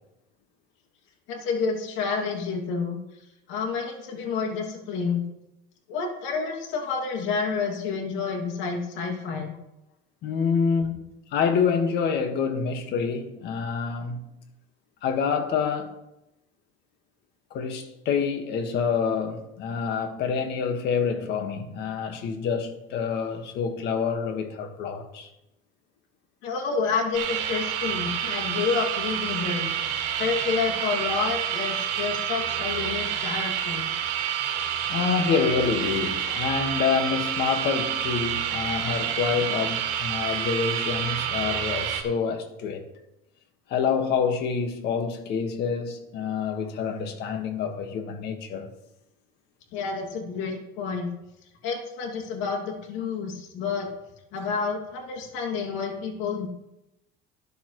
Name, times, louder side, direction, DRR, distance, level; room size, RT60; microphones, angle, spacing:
voice 1, 1.3-3.0 3.5-5.3 5.9-9.5 26.4-29.7 30.0-33.9 49.7-51.1 51.6-53.9 54.3-56.5, left 5 dB, 75° left, 2.6 m, -29 dB
voice 2, 10.2-11.0 11.3-14.3 15.0-16.0 17.5-25.3 31.8-31.9 34.9-42.8 43.7-48.7, left 6 dB, 55° left, 1.7 m, -27 dB
sound 1, 27.1-42.0, right 9 dB, 75° right, 2.0 m, -28 dB
13.5 x 10.5 x 3.2 m
cardioid pair, 135°, 20 cm